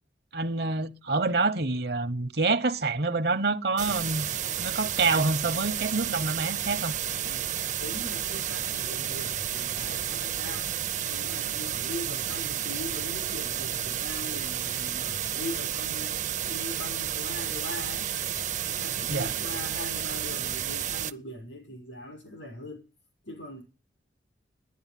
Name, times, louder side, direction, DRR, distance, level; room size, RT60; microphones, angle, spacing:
voice 1, 0.3-4.3 4.6-6.9 19.1-19.3, right 3 dB, 60° right, 1.0 m, -27 dB
sound 1, 3.8-21.1, right 10 dB, 40° right, 0.6 m, -31 dB
voice 2, 7.2-7.5 7.8-10.7 11.0-16.2 16.5-18.1 18.6-22.8 23.3-23.6, left 1 dB, 90° left, 6.1 m, -41 dB
10.5 x 10.0 x 9.1 m
head